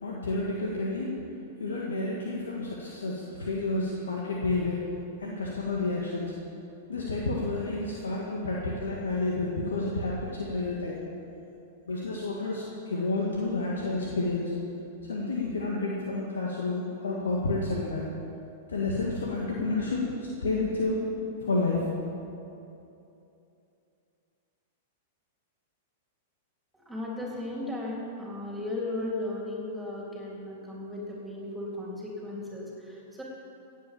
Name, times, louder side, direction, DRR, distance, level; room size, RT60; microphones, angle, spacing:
voice 1, 0.0-1.2 1.6-4.8 5.2-6.4 6.9-11.0 11.9-14.5 15.0-18.1 18.7-21.0 21.4-21.9, left 2 dB, 80° left, -3 dB, 1.8 m, -30 dB
voice 2, 26.9-33.2, left 2 dB, 5° right, -4 dB, 3.7 m, -36 dB
17.0 x 8.5 x 7.1 m, 2.8 s
hypercardioid pair, 105°, 0 cm